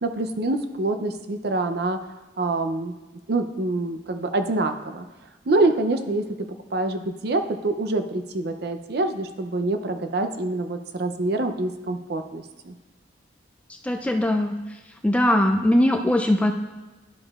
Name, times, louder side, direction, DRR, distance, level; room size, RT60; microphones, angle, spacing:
voice 1, 0.0-2.0 2.4-2.9 3.3-5.0 5.5-6.2 6.7-12.7, right 2 dB, 55° right, 7 dB, 0.5 m, -25 dB
voice 2, 13.8-14.5 15.0-16.5, left 1 dB, 5° left, 3 dB, 0.3 m, -20 dB
11.5 x 5.3 x 2.4 m, 1.2 s
head